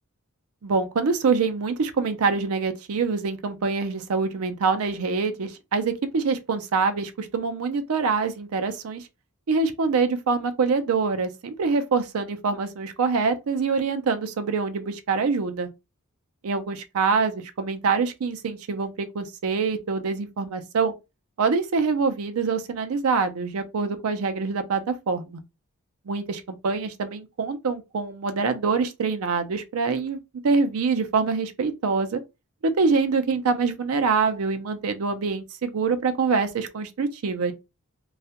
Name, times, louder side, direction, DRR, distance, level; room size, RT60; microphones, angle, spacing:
voice 1, 0.6-9.0 9.5-15.7 16.4-20.9 21.4-25.4 26.1-30.2 30.4-32.2 32.6-37.5, right 4 dB, 75° right, 0.5 m, -25 dB
2.3 x 2.1 x 2.8 m
head